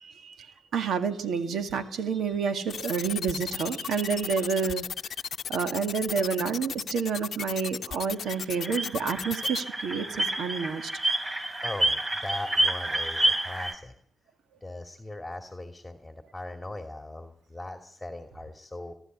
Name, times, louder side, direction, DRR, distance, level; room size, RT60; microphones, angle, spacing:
voice 1, 0.0-4.9 5.5-10.9, right 6 dB, 75° right, 7 dB, 2.1 m, -29 dB
sound 1, 2.7-9.6, left 7 dB, 65° left, 0.7 m, -35 dB
sound 2, 8.3-13.7, right 1 dB, 30° right, 4.3 m, -28 dB
voice 2, 11.6-13.9 14.6-18.9, left 2 dB, 10° left, 5 dB, 2.5 m, -39 dB
23.5 x 12.0 x 9.4 m, 0.69 s
cardioid pair, 65°, 0 cm